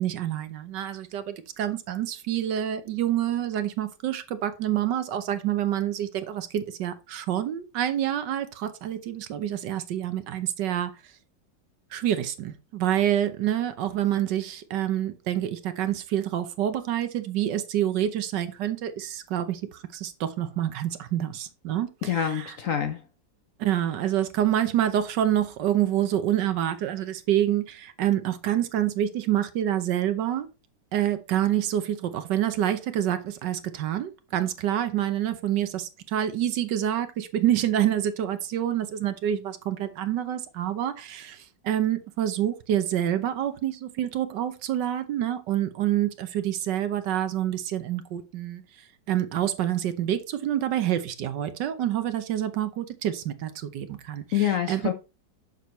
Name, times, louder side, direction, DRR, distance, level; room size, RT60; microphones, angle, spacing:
voice 1, 0.0-10.9 11.9-22.5 23.6-30.5 30.9-48.6 49.1-54.8, right 11 dB, 75° right, 1.4 m, -27 dB
voice 2, 22.0-23.0 54.3-54.9, left 9 dB, 60° left, 0.9 m, -26 dB
6.9 x 6.4 x 3.0 m
omnidirectional pair, 2.0 m